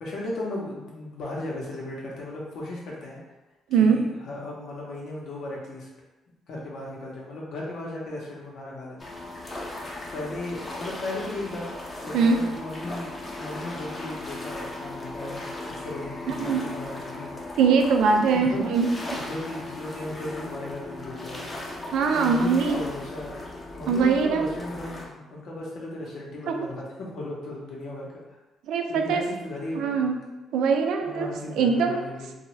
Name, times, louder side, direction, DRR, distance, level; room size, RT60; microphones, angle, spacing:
voice 1, 0.0-3.2 3.7-5.9 6.5-9.0 9.3-9.4 10.1-11.7 12.0-17.3 18.3-18.7 19.1-21.5 22.1-23.3 23.7-28.4 28.9-30.2 31.0-32.3, left 2 dB, 75° left, -4 dB, 0.8 m, -36 dB
sound 1, 9.0-25.1, left 2 dB, 25° left, 0.6 m, -37 dB
voice 2, 16.3-16.6 17.6-18.9 21.9-22.8 23.9-24.5 26.5-26.7 28.7-29.2 29.8-30.2 30.5-32.0, right 5 dB, 85° right, 4 dB, 0.3 m, -22 dB
2.6 x 2.2 x 3.0 m, 1.1 s
cardioid pair, 90°, 0 cm